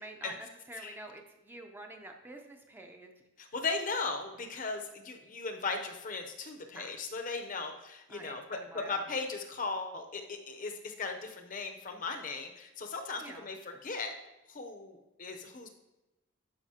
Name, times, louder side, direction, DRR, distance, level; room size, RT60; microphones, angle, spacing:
voice 1, 0.0-3.1 6.7-6.9 8.1-9.0 13.2-13.5, right 1 dB, 10° right, 3 dB, 0.6 m, -48 dB
voice 2, 3.4-8.6 8.9-14.1 14.5-15.7, left 4 dB, 40° left, 5 dB, 0.7 m, -37 dB
12.0 x 5.2 x 2.9 m, 0.98 s
head